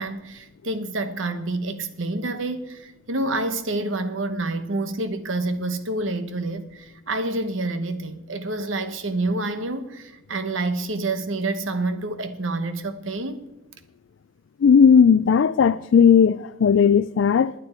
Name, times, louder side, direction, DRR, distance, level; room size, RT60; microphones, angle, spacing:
voice 1, 0.0-13.4, right 2 dB, 75° right, 1.1 m, -28 dB
voice 2, 14.6-17.5, left 7 dB, 70° left, 0.4 m, -16 dB
19.5 x 9.6 x 4.4 m
head